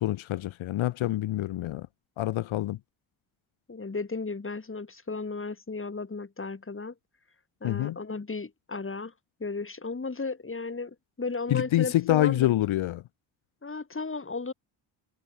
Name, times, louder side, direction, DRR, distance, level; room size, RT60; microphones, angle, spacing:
voice 1, 0.0-1.9 2.2-2.8 7.6-8.0 11.5-13.0, left 14 dB, 75° left, 2.2 m, -26 dB
voice 2, 3.7-6.9 7.6-9.1 9.4-12.6 13.6-14.5, left 4 dB, 25° left, 4.5 m, -35 dB
supercardioid pair, 60°, 48 cm